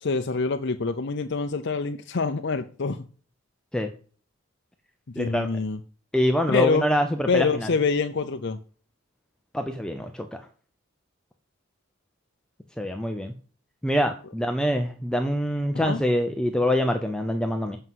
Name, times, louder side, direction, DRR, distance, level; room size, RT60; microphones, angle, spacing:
voice 1, 0.0-3.0 5.1-5.8 6.5-6.9 7.3-8.6 15.7-16.0, left 4 dB, 55° left, 0.6 m, -25 dB
voice 2, 5.2-5.5 6.1-7.7 9.5-10.4 12.8-13.3 13.8-17.8, left 1 dB, 5° left, 0.7 m, -25 dB
7.9 x 5.6 x 7.6 m
head